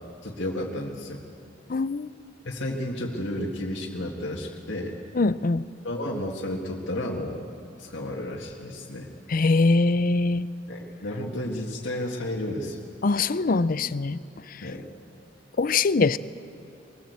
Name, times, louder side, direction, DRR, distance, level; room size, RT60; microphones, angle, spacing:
voice 1, 0.2-1.2 2.4-5.0 5.8-7.4 7.8-9.1 10.7-12.9 14.6-14.8, left 1 dB, 85° left, -3 dB, 2.0 m, -32 dB
voice 2, 1.7-2.1 5.1-5.6 9.3-10.5 13.0-14.2 15.6-16.2, left 3 dB, 50° left, 16 dB, 0.5 m, -22 dB
21.5 x 20.0 x 8.2 m, 2.6 s
head